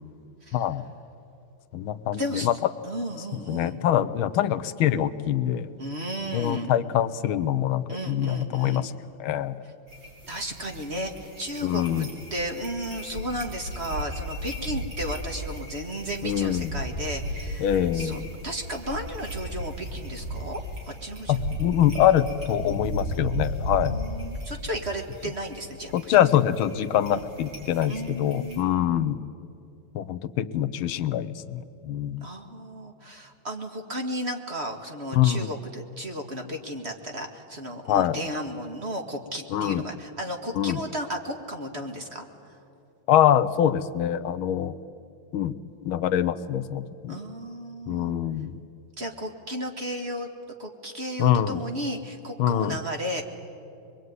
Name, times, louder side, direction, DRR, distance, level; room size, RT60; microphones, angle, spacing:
voice 1, 0.5-0.9 1.7-2.7 3.5-5.7 6.3-8.9 9.2-9.6 11.6-12.1 16.2-16.7 17.6-18.3 21.3-24.0 25.9-29.2 29.9-32.2 35.1-35.5 37.9-38.2 39.5-39.8 40.5-40.8 43.1-44.7 45.3-45.6 45.8-47.2 47.9-48.6 51.2-51.6 52.4-52.8, left 11 dB, 80° left, 13 dB, 1.6 m, -24 dB
voice 2, 2.1-2.5 2.8-3.8 5.8-6.7 7.9-8.9 10.3-20.6 21.0-21.3 23.8-26.2 27.1-27.2 27.9-29.0 32.2-42.2 47.1-48.1 49.0-50.3 50.6-53.2, equal, 30° right, 3 dB, 2.0 m, -34 dB
sound 1, 9.9-28.6, equal, 60° right, 6.1 m, -36 dB
24.5 x 22.5 x 9.5 m, 2.7 s
omnidirectional pair, 2.2 m